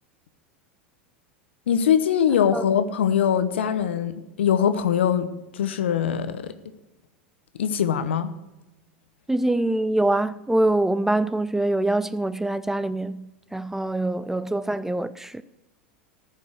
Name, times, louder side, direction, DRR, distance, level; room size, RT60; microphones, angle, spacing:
voice 1, 1.7-6.5 7.6-8.3, left 8 dB, 75° left, 0.9 m, -22 dB
voice 2, 9.3-13.3 13.5-15.4, right 1 dB, 5° right, 0.4 m, -24 dB
14.5 x 5.4 x 6.5 m
hypercardioid pair, 90°, 6 cm